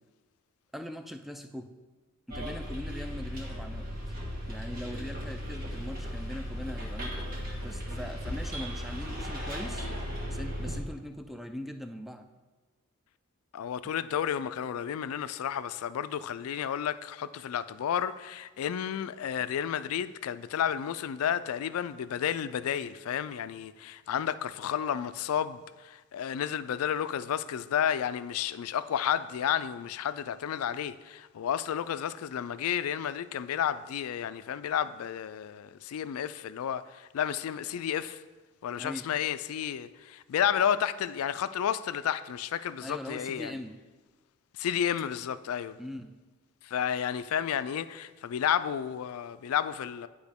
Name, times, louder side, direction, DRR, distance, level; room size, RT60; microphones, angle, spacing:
voice 1, 0.7-1.7 2.3-3.9 4.5-7.1 7.6-9.9 10.3-12.3 38.8-39.1 42.8-43.8 45.8-46.1, left 1 dB, ahead, 0.4 m, -41 dB
Bus, 2.3-10.8, equal, 45° right, 1.6 m, -36 dB
voice 2, 13.5-38.2 38.6-43.6 44.6-45.8 46.6-50.1, left 9 dB, 80° left, 0.3 m, -31 dB
10.5 x 4.9 x 3.5 m
head